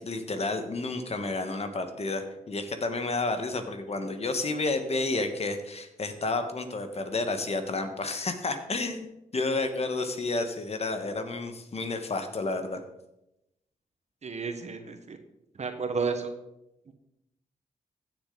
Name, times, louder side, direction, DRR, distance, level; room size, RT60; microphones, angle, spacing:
voice 1, 0.0-12.8, left 3 dB, 45° left, 7 dB, 1.5 m, -31 dB
voice 2, 14.2-15.2 15.6-16.3 16.9-17.0, right 4 dB, 50° right, 7 dB, 1.4 m, -32 dB
15.0 x 6.9 x 4.0 m, 0.89 s
cardioid pair, 60°, 15 cm